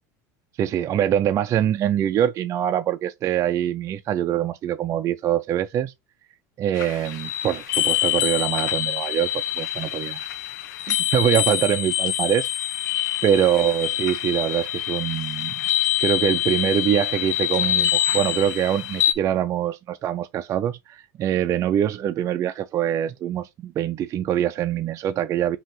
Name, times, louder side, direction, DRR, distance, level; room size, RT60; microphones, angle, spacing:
voice 1, 0.6-5.9 6.6-10.3 10.9-12.5 13.2-15.6 16.0-25.6, right 10 dB, 35° right, 0.4 m, -24 dB
sound 1, 6.8-19.1, left 12 dB, 85° left, 0.7 m, -25 dB
5.3 x 2.8 x 3.6 m
supercardioid pair, 125°, 9 cm